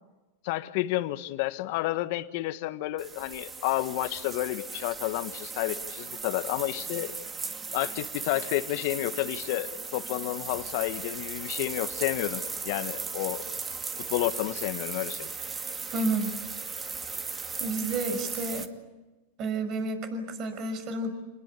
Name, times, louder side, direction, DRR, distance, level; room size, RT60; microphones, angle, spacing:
voice 1, 0.4-7.1 7.7-13.5 14.1-15.3, left 17 dB, 60° left, 10 dB, 1.7 m, -30 dB
sound 1, 3.0-18.7, right 4 dB, 20° right, 2.3 m, -37 dB
voice 2, 15.9-16.3 17.6-18.7 19.4-21.1, right 2 dB, 40° right, 8 dB, 6.0 m, -30 dB
28.5 x 21.0 x 8.5 m, 1.1 s
hypercardioid pair, 120°, 0 cm